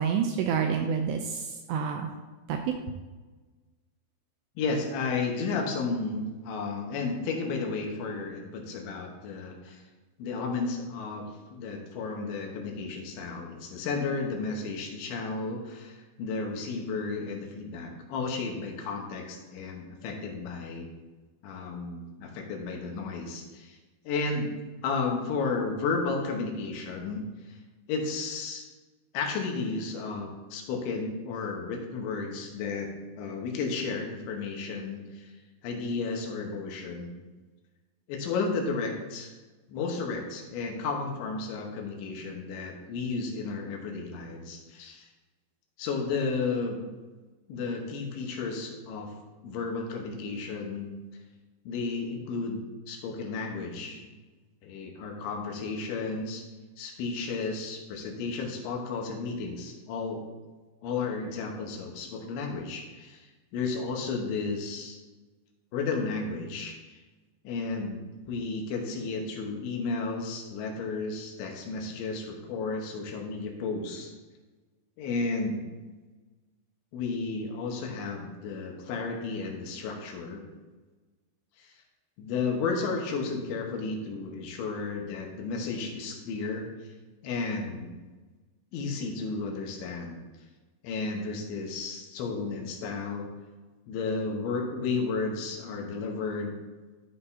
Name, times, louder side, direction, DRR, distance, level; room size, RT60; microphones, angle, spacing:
voice 1, 0.0-2.1 2.5-2.8, right 7 dB, 85° right, 4 dB, 2.5 m, -28 dB
voice 2, 4.6-9.8 10.2-11.3 11.5-20.9 21.4-23.8 24.1-24.5 24.8-27.6 27.9-28.6 29.1-32.9 33.2-35.3 35.6-37.2 38.1-39.3 39.7-45.1 45.8-46.8 47.5-49.1 49.4-50.9 51.7-54.1 54.6-56.4 56.8-60.2 60.8-65.0 65.7-67.0 67.5-68.0 68.3-74.1 75.0-75.6 76.9-80.4 81.6-81.7 82.2-86.7 87.2-87.9 88.7-90.2 90.8-93.3 93.9-96.6, left 4 dB, 80° left, 1 dB, 3.4 m, -33 dB
12.0 x 7.7 x 2.8 m, 1.3 s
omnidirectional pair, 5.4 m